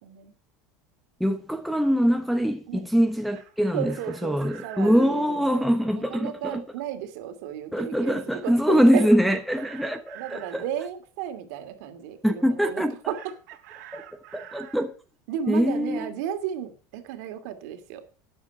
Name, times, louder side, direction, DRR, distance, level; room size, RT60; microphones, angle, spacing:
voice 1, 1.2-3.9 4.2-6.6 7.7-10.6 12.2-13.1 13.9-14.1 14.3-14.9 15.5-16.1, equal, ahead, 0.9 m, -23 dB
Chicken rooster, 3.0-5.1 8.9-10.7 13.1-14.9, right 12 dB, 90° right, 3.1 m, -46 dB
voice 2, 3.7-5.7 5.9-9.0 10.2-13.2 15.3-18.0, right 9 dB, 65° right, 2.6 m, -34 dB
12.5 x 10.0 x 4.8 m
supercardioid pair, 170°, 9 cm